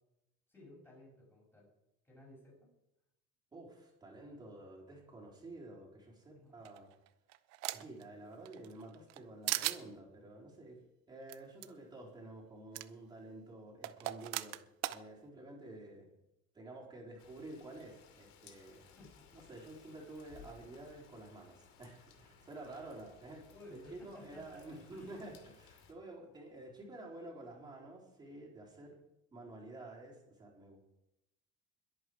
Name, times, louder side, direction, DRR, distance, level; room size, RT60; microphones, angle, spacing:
voice 1, 0.5-1.7 2.0-2.7 6.3-6.6 18.8-19.5 23.5-24.6 24.9-25.2, left 1 dB, 10° left, -3 dB, 6.3 m, -57 dB
voice 2, 3.5-6.9 7.7-10.8 11.1-14.6 14.9-16.1 16.5-18.8 19.3-29.0 29.3-30.8, right 2 dB, 15° right, -2 dB, 4.0 m, -50 dB
sound 1, 6.6-8.0 8.5-9.2 9.5-9.8 11.3-11.4 11.6-11.7 12.7-12.9 13.8-15.0, right 16 dB, 60° right, 0.8 m, -37 dB
Rain, 17.2-25.9, left 6 dB, 70° left, 2.8 m, -61 dB
22.0 x 8.7 x 4.8 m, 0.87 s
cardioid pair, 165°, 30 cm